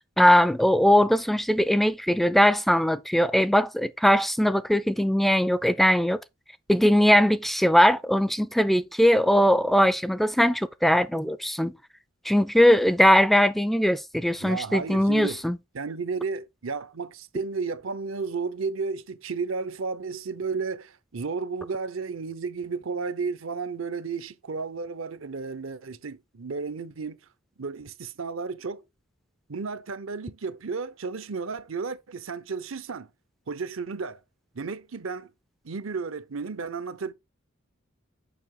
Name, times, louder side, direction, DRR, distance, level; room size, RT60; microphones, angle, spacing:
voice 1, 0.2-6.2 6.7-11.7 12.3-15.6, equal, ahead, 0.4 m, -20 dB
voice 2, 14.4-15.4 15.7-27.2 27.6-28.8 29.5-33.1 33.5-34.2 34.5-35.3 35.6-37.1, right 4 dB, 70° right, 0.8 m, -33 dB
7.1 x 5.8 x 3.8 m
head